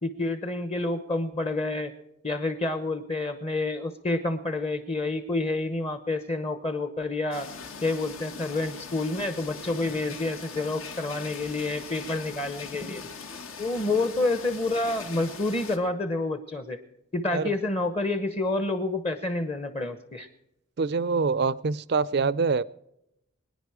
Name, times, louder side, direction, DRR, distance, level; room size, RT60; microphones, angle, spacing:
voice 1, 0.0-1.9 2.2-7.5 7.8-13.1 13.6-16.8 17.1-20.3, left 2 dB, 30° left, 10 dB, 0.8 m, -28 dB
sound 1, 7.3-15.8, left 5 dB, 75° left, 1.5 m, -41 dB
voice 2, 20.8-22.6, right 4 dB, 50° right, 20 dB, 0.4 m, -25 dB
23.0 x 10.0 x 4.8 m, 0.86 s
head